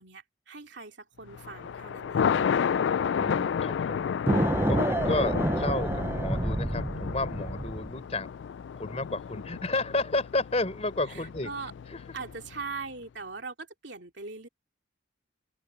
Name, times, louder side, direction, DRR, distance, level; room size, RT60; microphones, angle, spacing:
voice 1, 0.0-2.3 11.1-11.7 12.1-14.5, right 4 dB, 65° right, 2.8 m, -40 dB
Thunder, 1.3-12.6, left 7 dB, 65° left, 0.3 m, -32 dB
voice 2, 3.2-4.1 4.7-8.3 8.7-11.5 11.9-12.0, left 2 dB, 35° left, 3.8 m, -31 dB
sound 1, 4.3-8.0, right 1 dB, 10° right, 0.5 m, -28 dB
open air
head